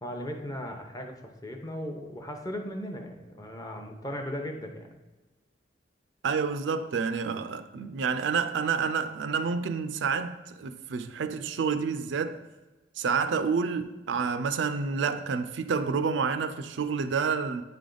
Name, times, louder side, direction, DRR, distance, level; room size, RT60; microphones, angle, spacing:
voice 1, 0.0-4.9, equal, 20° left, 0.7 m, -37 dB
voice 2, 6.2-12.4 13.0-17.6, right 5 dB, 80° right, 0.4 m, -29 dB
9.1 x 3.4 x 3.8 m
head